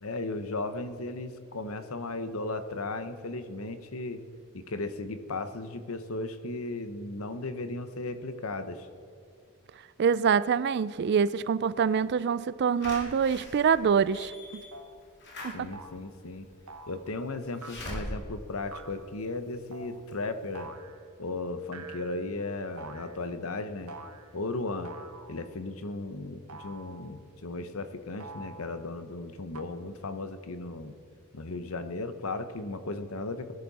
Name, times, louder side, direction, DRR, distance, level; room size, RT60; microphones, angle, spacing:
voice 1, 0.0-4.2 4.5-8.9 15.5-16.5 16.9-20.7 21.2-23.9 24.3-24.9 25.3-30.9 31.3-33.5, left 2 dB, 70° left, 10 dB, 1.0 m, -36 dB
voice 2, 10.0-14.3 15.4-15.7, right 6 dB, 50° right, 18 dB, 0.3 m, -25 dB
Slam / Alarm, 12.8-19.6 20.1-20.2 20.4-20.5, left 1 dB, 50° left, 2.5 m, -43 dB
sound 1, 14.7-15.0 15.7-16.1 16.7-17.1 17.6-18.1 18.7-19.1 19.7-20.0 20.5-21.0 21.7-22.3 22.8-23.2 23.9-24.4 24.8-25.5 26.5-27.2 28.2-28.9 29.5-29.6, right 3 dB, 90° right, 1.2 m, -46 dB
20.5 x 11.0 x 4.2 m, 2.4 s
head